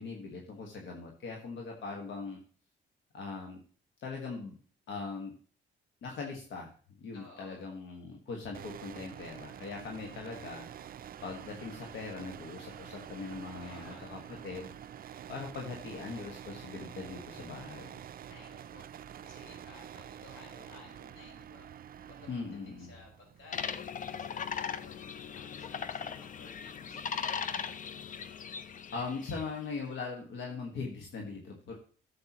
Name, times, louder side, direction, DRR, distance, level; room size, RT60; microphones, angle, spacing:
voice 1, 0.0-2.4 3.1-3.6 4.0-4.5 4.9-5.3 6.0-10.7 11.2-14.7 15.3-18.0 22.3-22.9 28.9-31.8, left 4 dB, 75° left, 1 dB, 1.7 m, -41 dB
voice 2, 7.1-7.6 13.6-14.2 18.3-18.9 19.2-21.7 22.0-25.0 25.3-27.6 29.1-29.5, left 3 dB, 90° left, -1 dB, 4.5 m, -56 dB
sound 1, 8.5-24.5, right 9 dB, 45° right, 0.4 m, -48 dB
sound 2, 23.5-29.6, left 7 dB, 40° left, 0.6 m, -38 dB
12.5 x 7.7 x 3.0 m, 0.43 s
cardioid pair, 90°, 20 cm